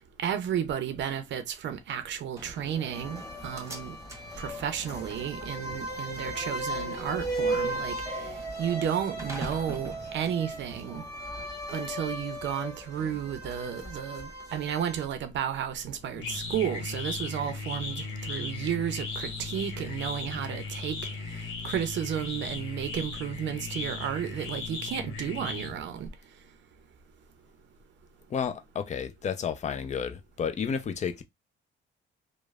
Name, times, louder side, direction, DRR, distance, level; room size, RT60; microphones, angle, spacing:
voice 1, 0.2-3.9 4.4-11.0 11.7-21.0 21.3-26.1, right 9 dB, 65° right, 0.5 m, -33 dB
Slam, 2.4-11.4, right 2 dB, 15° right, 1.0 m, -45 dB
sound 1, 2.9-15.1, right 1 dB, 15° left, 1.6 m, -36 dB
sound 2, 15.7-26.1, left 4 dB, 75° left, 1.0 m, -37 dB
voice 2, 28.3-31.2, left 7 dB, 35° left, 0.5 m, -31 dB
3.0 x 2.0 x 2.3 m
cardioid pair, 90°, 20 cm